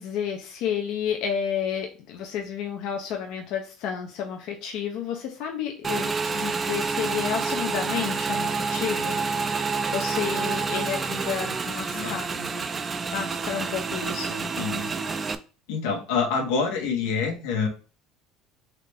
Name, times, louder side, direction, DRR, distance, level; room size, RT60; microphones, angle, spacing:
voice 1, 0.0-9.2 9.6-12.7 13.1-14.5, left 8 dB, 60° left, 2 dB, 0.6 m, -31 dB
Motorcycle / Engine, 5.8-15.4, right 4 dB, 20° right, 0.4 m, -28 dB
voice 2, 11.9-12.2 14.6-14.9 15.7-17.7, left 5 dB, 90° left, 2 dB, 1.2 m, -26 dB
3.7 x 3.2 x 3.5 m, 0.36 s
cardioid pair, 135°, 0 cm